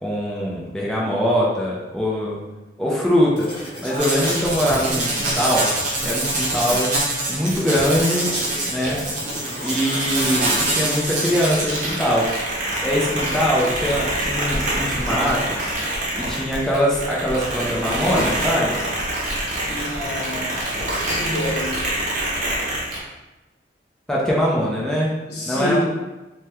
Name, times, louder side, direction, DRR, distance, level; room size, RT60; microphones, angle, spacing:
voice 1, 0.0-2.4 2.8-3.5 3.8-5.7 6.0-6.9 7.3-8.3 8.7-9.0 9.6-12.3 12.8-15.7 16.1-18.8 24.1-25.1 25.4-25.8, equal, 5° left, -5 dB, 0.4 m, -22 dB
sound 1, 3.4-4.7 8.3-11.2 13.8-14.0, equal, 30° left, 1.3 m, -34 dB
sound 2, 4.0-23.0, right 1 dB, 45° right, 0.7 m, -25 dB
voice 2, 19.6-20.5 21.0-21.8 25.3-25.8, left 1 dB, 65° left, -4 dB, 0.8 m, -27 dB
3.4 x 2.1 x 2.9 m, 1.1 s
head